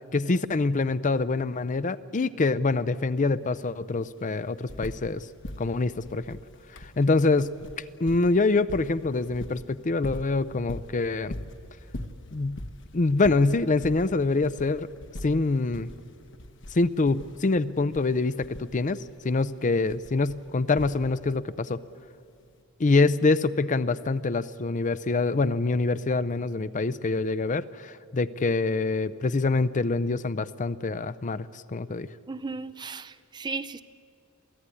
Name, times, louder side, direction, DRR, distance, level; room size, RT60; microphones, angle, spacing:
voice 1, 0.1-5.3 5.6-6.4 6.8-7.5 8.0-11.4 12.3-12.6 12.9-14.9 15.2-15.9 16.7-21.8 22.8-32.1, left 3 dB, 35° left, 15 dB, 0.5 m, -25 dB
sound 1, 3.4-3.5 3.7-5.2 5.4-21.4 22.5-22.6, left 1 dB, 60° left, 1.3 m, -42 dB
voice 2, 32.3-33.8, right 4 dB, 20° right, 14 dB, 0.5 m, -35 dB
27.5 x 16.5 x 9.9 m, 2.4 s
head